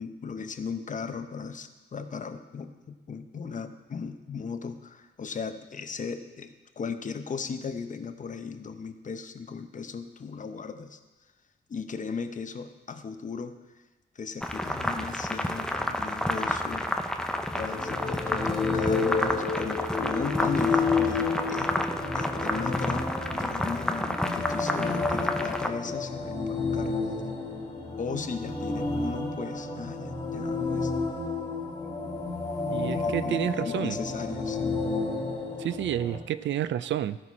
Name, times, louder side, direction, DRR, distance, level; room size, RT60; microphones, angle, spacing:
voice 1, 0.0-11.0 11.7-13.8 14.1-16.9 17.6-21.7 22.1-27.0 28.0-30.9 32.9-34.7, left 5 dB, 40° left, 8 dB, 0.7 m, -37 dB
sound 1, 14.4-25.7, left 1 dB, 5° left, 0.6 m, -30 dB
sound 2, 17.4-36.2, left 4 dB, 20° left, 1.7 m, -31 dB
voice 2, 32.7-34.0 35.6-37.2, right 11 dB, 80° right, 15 dB, 0.4 m, -30 dB
15.0 x 6.1 x 4.2 m, 1.2 s
wide cardioid pair, 115°, 19 cm